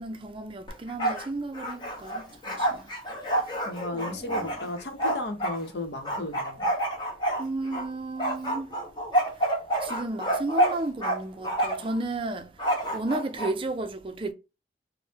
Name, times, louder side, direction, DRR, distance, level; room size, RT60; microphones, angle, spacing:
voice 1, 0.0-2.9 3.9-4.6 7.4-8.7 9.8-12.5 12.9-14.3, right 2 dB, 30° right, 0.4 m, -33 dB
Bark, 0.7-1.3 1.5-5.6 6.0-7.8 8.2-11.2 11.4-11.9 12.6-13.5, right 1 dB, 25° left, 1.0 m, -28 dB
voice 2, 3.6-6.7, left 1 dB, 70° left, 0.8 m, -34 dB
5.2 x 2.1 x 2.7 m
head